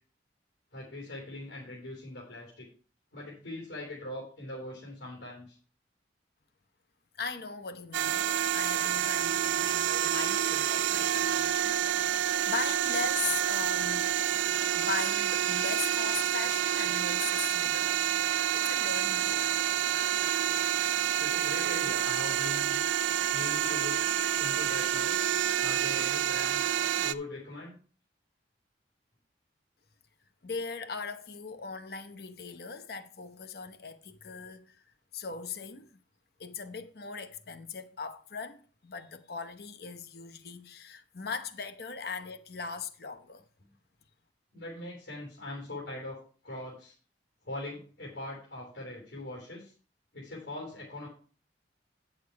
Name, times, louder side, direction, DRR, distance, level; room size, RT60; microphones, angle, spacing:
voice 1, 0.7-2.7 3.1-5.6 21.2-22.7 23.3-24.0 24.4-25.2 25.6-27.8 44.5-46.2 46.4-46.9 47.4-49.7 50.1-51.1, left 2 dB, 90° left, 3.5 m, -41 dB
voice 2, 7.2-14.1 14.7-18.2 18.5-19.5 30.4-34.8 35.1-36.0 36.4-43.4, left 5 dB, 55° left, 0.8 m, -39 dB
Dumpster Compress Machine, 7.9-27.1, right 11 dB, 90° right, 0.4 m, -28 dB
9.6 x 6.8 x 4.6 m
head